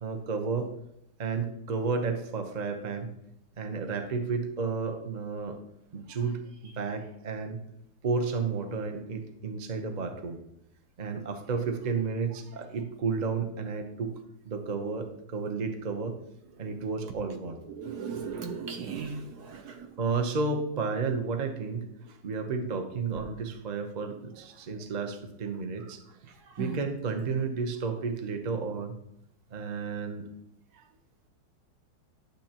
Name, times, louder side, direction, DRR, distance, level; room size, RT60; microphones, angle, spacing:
voice 1, 0.0-0.7 1.2-3.1 3.6-5.6 5.9-7.6 8.0-10.4 11.0-14.1 14.4-16.2 16.6-17.6 19.6-26.0 26.6-28.9 29.5-30.2 30.7-30.8, right 4 dB, 40° right, 0.6 m, -32 dB
voice 2, 17.7-19.9 26.5-26.8, right 5 dB, 65° right, 1.1 m, -37 dB
12.0 x 7.0 x 3.0 m
omnidirectional pair, 2.0 m